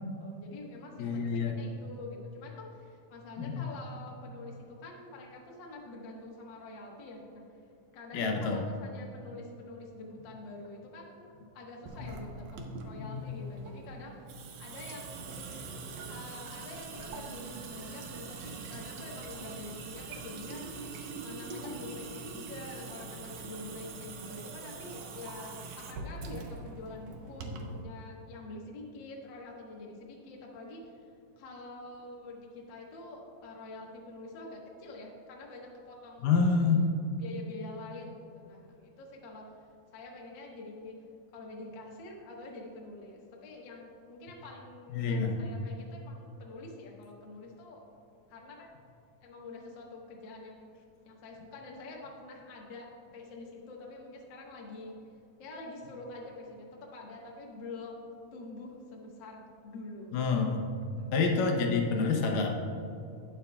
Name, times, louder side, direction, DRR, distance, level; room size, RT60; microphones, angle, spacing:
voice 1, 0.2-7.4 7.9-14.2 14.6-15.6 16.1-20.7 21.2-31.1 31.4-36.8 37.2-39.5 39.9-41.0 41.3-47.9 48.3-48.7 49.2-50.7 51.0-55.0 55.4-60.2 61.0-61.1, left 2 dB, 60° left, -2 dB, 1.2 m, -46 dB
voice 2, 1.0-1.6 3.4-3.6 8.1-8.6 12.0-12.2 13.0-13.4 36.2-36.9 44.9-45.4 60.1-60.8 61.1-62.5, left 4 dB, 75° left, 2 dB, 2.4 m, -28 dB
Water tap faucet / Sink (filling or washing) / Drip, 11.9-27.8, right 4 dB, 80° right, 1.5 m, -43 dB
18.5 x 7.0 x 2.3 m, 2.6 s
omnidirectional pair, 4.1 m